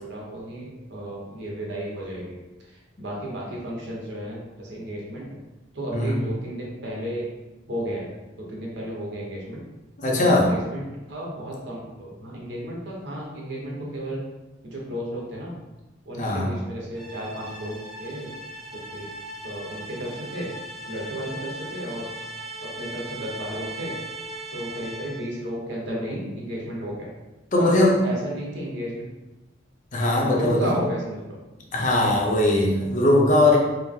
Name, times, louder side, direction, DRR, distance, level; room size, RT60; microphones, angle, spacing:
voice 1, 0.0-5.3 5.7-7.3 7.7-8.1 8.4-9.6 10.1-14.2 14.6-15.6 16.0-18.4 18.7-19.1 19.4-20.5 20.9-22.1 22.6-24.0 24.5-27.1 27.6-29.1 30.2-31.4, right 1 dB, 70° right, -3 dB, 1.1 m, -33 dB
voice 2, 10.0-10.5 16.2-16.5 27.5-28.0 29.9-30.8 31.7-33.6, left 2 dB, 45° left, -2 dB, 0.7 m, -20 dB
sound 1, 16.9-25.4, right 1 dB, ahead, 0.4 m, -38 dB
4.3 x 2.0 x 3.7 m, 1.1 s
head